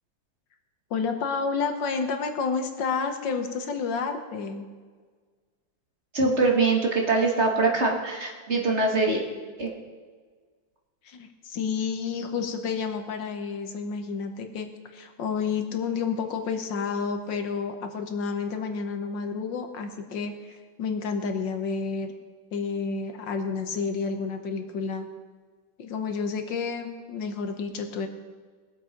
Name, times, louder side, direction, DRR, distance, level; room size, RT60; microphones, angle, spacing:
voice 1, 0.9-4.7 11.0-22.1 22.5-25.1 25.8-28.1, left 5 dB, 70° left, 6 dB, 1.7 m, -30 dB
voice 2, 6.1-9.2 9.6-9.7, right 3 dB, 40° right, 0 dB, 1.6 m, -23 dB
20.0 x 7.5 x 5.1 m, 1.5 s
omnidirectional pair, 2.1 m